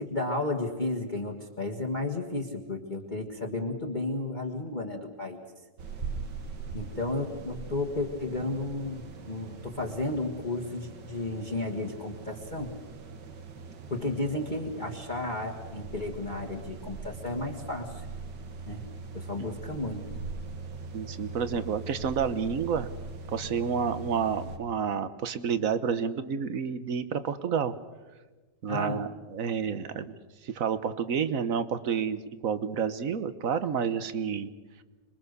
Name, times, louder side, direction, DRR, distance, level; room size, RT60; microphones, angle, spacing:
voice 1, 0.0-5.4 6.7-12.7 13.9-18.1 18.7-18.9 19.1-20.1 28.7-29.0, left 2 dB, 25° left, 1 dB, 1.7 m, -33 dB
sound 1, 5.8-24.6, right 4 dB, 70° right, 2.1 m, -41 dB
voice 2, 20.9-22.9 23.3-27.7 28.6-30.2 30.4-34.5, right 7 dB, 55° right, 12 dB, 1.3 m, -29 dB
26.0 x 22.0 x 6.8 m, 1.2 s
omnidirectional pair, 1.9 m